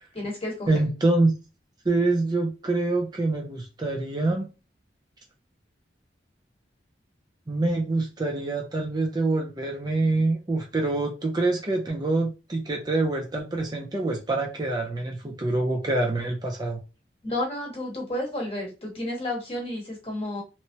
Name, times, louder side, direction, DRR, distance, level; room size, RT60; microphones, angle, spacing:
voice 1, 0.1-0.8 17.2-20.4, left 1 dB, 35° left, -1 dB, 1.3 m, -31 dB
voice 2, 0.7-1.3 1.9-4.5 7.5-16.8, right 2 dB, 25° right, 1 dB, 0.4 m, -25 dB
2.9 x 2.1 x 2.8 m, 0.30 s
head